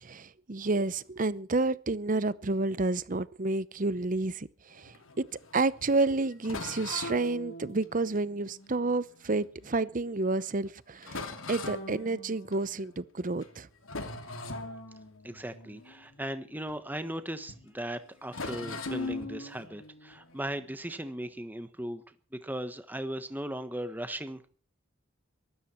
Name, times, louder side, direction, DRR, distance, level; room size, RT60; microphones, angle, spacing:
voice 1, 0.0-5.2 5.5-13.7, right 3 dB, 40° right, 0.8 m, -30 dB
sound 1, 4.7-9.7 10.3-10.4 10.7-10.8 11.0-13.0 13.3-13.6 13.8-17.2 17.5-17.7 18.3-21.3, left 2 dB, 90° left, 2.8 m, -41 dB
voice 2, 15.2-24.4, right 1 dB, 10° right, 1.3 m, -38 dB
23.0 x 13.0 x 4.5 m
head